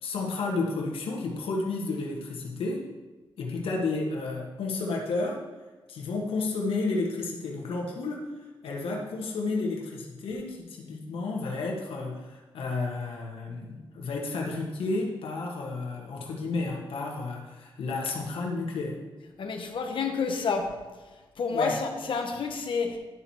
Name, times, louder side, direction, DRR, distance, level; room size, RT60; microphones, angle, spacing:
voice 1, 0.0-2.9 3.4-5.4 5.9-8.3 8.6-19.0 21.5-21.8, left 3 dB, 90° left, -1 dB, 1.2 m, -31 dB
voice 2, 19.4-20.8 21.4-23.0, left 5 dB, 65° left, 3 dB, 1.2 m, -29 dB
11.0 x 4.1 x 4.6 m, 1.2 s
cardioid pair, 80°, 9 cm